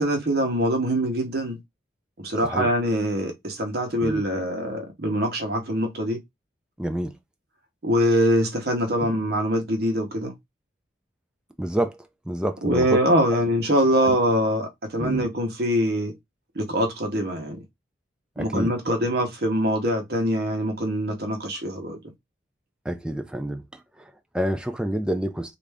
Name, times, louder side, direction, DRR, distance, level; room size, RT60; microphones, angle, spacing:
voice 1, 0.0-1.6 2.2-6.2 7.8-10.3 12.6-16.1 16.6-17.6 18.4-22.0, equal, 55° right, 0.9 m, -23 dB
voice 2, 2.4-2.7 4.0-4.2 6.8-7.1 9.0-9.2 11.6-12.0 12.3-13.0 14.0-14.2 15.0-15.3 18.4-18.7 22.9-23.6 24.0-25.5, right 1 dB, 5° right, 0.4 m, -28 dB
3.2 x 2.5 x 3.4 m
head